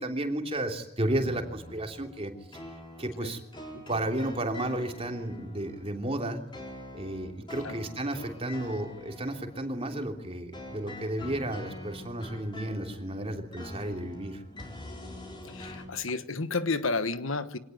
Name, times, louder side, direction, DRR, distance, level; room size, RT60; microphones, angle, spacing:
voice 1, 0.0-2.6 3.0-3.4 3.9-6.4 6.9-14.4, right 1 dB, 30° right, 4 dB, 3.1 m, -33 dB
sound 1, 1.1-15.8, left 1 dB, 25° left, 4.9 m, -45 dB
voice 2, 15.4-17.6, left 3 dB, 75° left, 12 dB, 1.3 m, -31 dB
25.5 x 18.5 x 9.5 m, 0.89 s
head